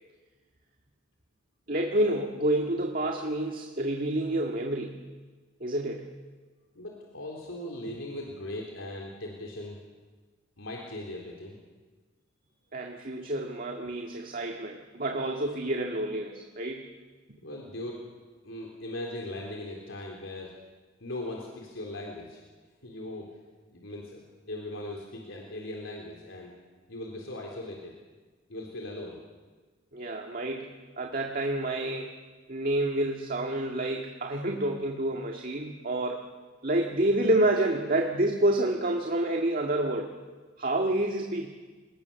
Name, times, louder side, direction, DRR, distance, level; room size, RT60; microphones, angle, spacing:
voice 1, 1.7-5.0 5.6-6.1 12.7-16.9 29.9-32.2 32.5-36.3 36.6-40.1 40.6-41.5, right 1 dB, 45° right, 2 dB, 1.9 m, -28 dB
voice 2, 6.7-9.8 10.6-11.6 17.3-18.0 18.4-20.5 21.0-22.4 22.8-23.3 23.7-26.5 26.9-27.9 28.5-29.2, left 1 dB, 85° left, -1 dB, 3.7 m, -39 dB
29.0 x 19.5 x 7.0 m, 1.4 s
head